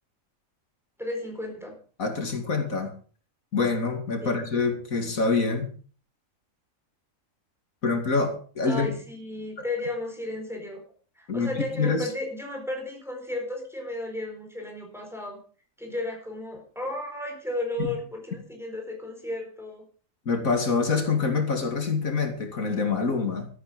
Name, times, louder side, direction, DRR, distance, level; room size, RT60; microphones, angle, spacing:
voice 1, 1.0-1.8 4.2-4.4 8.7-10.8 11.2-15.4 15.8-19.8, left 2 dB, ahead, 2 dB, 4.3 m, -34 dB
voice 2, 2.0-2.9 3.5-5.7 7.8-9.0 11.3-11.5 11.8-12.1 17.8-17.9 20.3-23.5, left 4 dB, 90° left, 5 dB, 3.0 m, -26 dB
13.5 x 11.5 x 5.2 m, 0.41 s
omnidirectional pair, 1.4 m